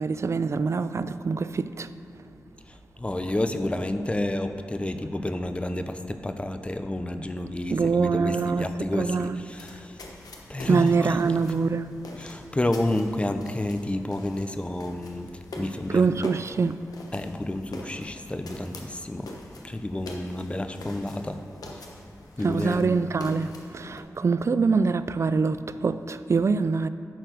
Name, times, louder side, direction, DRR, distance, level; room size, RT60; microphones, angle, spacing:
voice 1, 0.0-1.9 7.7-8.7 8.9-9.4 10.7-11.9 15.9-16.8 22.4-26.9, right 4 dB, 50° right, 0.4 m, -24 dB
voice 2, 3.0-10.1 10.5-11.2 12.2-15.3 15.6-16.3 17.1-19.3 19.6-21.4 22.4-23.0, left 1 dB, 20° left, 0.6 m, -30 dB
sound 1, 9.2-24.0, left 2 dB, 90° left, 1.0 m, -45 dB
10.0 x 4.5 x 6.5 m
cardioid pair, 65°, 6 cm